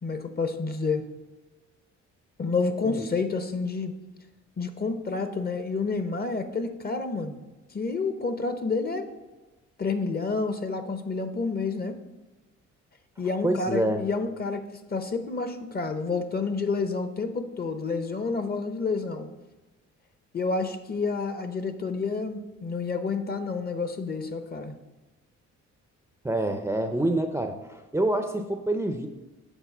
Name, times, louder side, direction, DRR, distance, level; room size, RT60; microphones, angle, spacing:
voice 1, 0.0-1.0 2.4-3.9 4.6-7.4 7.7-9.1 9.8-12.0 13.2-14.6 14.9-19.3 20.3-24.8, left 4 dB, 30° left, 9 dB, 0.7 m, -29 dB
voice 2, 13.4-14.0 26.2-29.1, right 1 dB, 10° right, 6 dB, 0.5 m, -27 dB
8.2 x 3.7 x 5.9 m, 1.1 s
cardioid pair, 90°, 30 cm